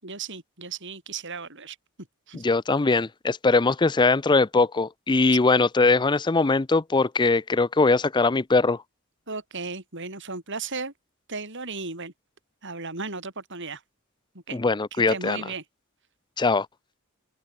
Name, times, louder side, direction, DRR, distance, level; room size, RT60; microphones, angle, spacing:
voice 1, 0.0-1.8 2.3-2.5 9.3-10.9 11.3-12.1 12.6-13.8 14.3-14.6 14.9-15.6, right 4 dB, 55° right, 6.9 m, -35 dB
voice 2, 2.3-8.8 14.5-15.4 16.4-16.7, left 3 dB, 20° left, 0.5 m, -21 dB
head